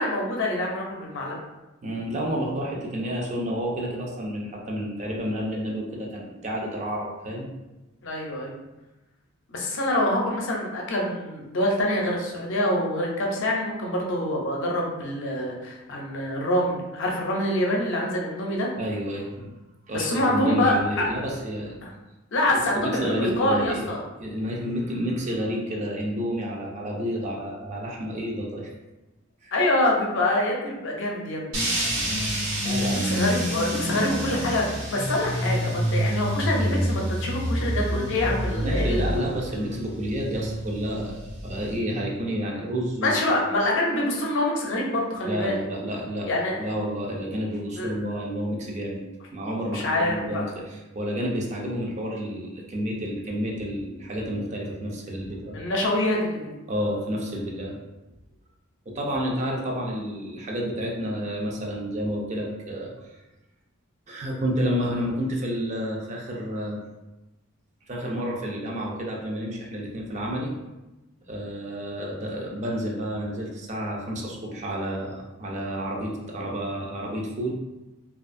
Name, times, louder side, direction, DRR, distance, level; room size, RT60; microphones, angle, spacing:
voice 1, 0.0-1.4 8.0-8.5 9.5-18.7 19.9-21.1 21.8-21.9 22.3-24.0 29.5-31.5 32.9-39.1 43.0-45.6 46.2-46.6 47.8-47.9 49.7-50.4 55.5-56.5, left 1 dB, 60° left, -1 dB, 0.5 m, -25 dB
voice 2, 1.8-7.5 18.8-19.5 19.9-21.8 22.5-23.9 24.2-28.7 29.4-29.5 32.6-33.1 38.6-43.2 45.2-46.3 46.6-49.0 49.3-55.6 56.7-57.7 58.9-63.2 64.1-66.8 67.9-70.5 71.3-77.5, equal, 35° right, -1 dB, 0.4 m, -30 dB
sound 1, 31.5-41.8, equal, 85° right, 1.1 m, -28 dB
2.5 x 2.3 x 2.5 m, 1.0 s
head